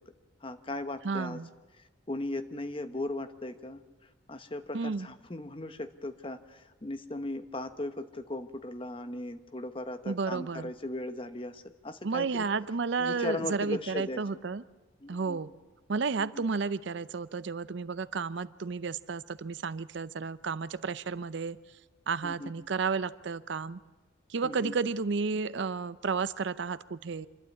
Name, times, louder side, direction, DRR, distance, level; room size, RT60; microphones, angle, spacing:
voice 1, 0.4-1.4 2.1-3.8 4.3-12.5 13.0-14.2 15.0-15.4 16.2-16.4 22.2-22.5 24.4-24.8, left 2 dB, 25° left, 8 dB, 1.0 m, -37 dB
voice 2, 1.0-1.5 4.7-5.1 10.1-10.7 12.0-14.6 15.1-15.5 15.9-21.6 22.1-23.8 24.3-27.3, right 4 dB, 60° right, 16 dB, 0.5 m, -32 dB
27.0 x 12.0 x 8.5 m, 1.3 s
head